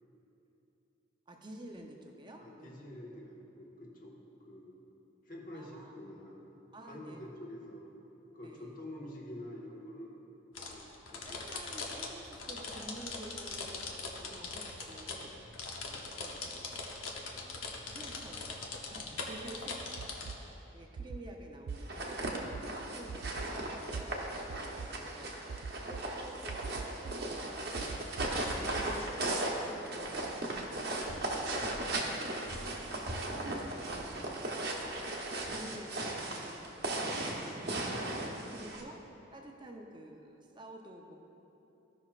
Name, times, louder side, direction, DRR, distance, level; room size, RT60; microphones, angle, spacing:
voice 1, 1.3-2.8 5.5-6.0 6.7-7.2 8.4-8.7 11.1-16.9 17.2-17.5 17.9-19.9 20.7-27.4 27.8-29.2 29.5-30.7 31.0-37.9 38.5-39.0 39.3-41.2, right 1 dB, 25° right, 2 dB, 0.6 m, -51 dB
voice 2, 2.4-4.1 4.4-4.8 5.2-6.4 6.8-7.9 8.3-10.2 10.7-11.3 38.5-38.7, left 1 dB, 45° left, -4 dB, 1.3 m, -47 dB
sound 1, 10.5-20.3, left 3 dB, 90° left, 0.9 m, -41 dB
sound 2, 20.0-20.4 21.0-21.2 21.7-21.8 22.2-22.6 23.1-23.5 23.9-24.0 24.5-24.9 25.5-26.0 26.5-27.1 27.8-28.8, right 5 dB, 80° right, 0.4 m, -40 dB
sound 3, 21.7-38.8, right 1 dB, 55° right, 0.9 m, -37 dB
15.0 x 5.8 x 2.4 m, 3.0 s
head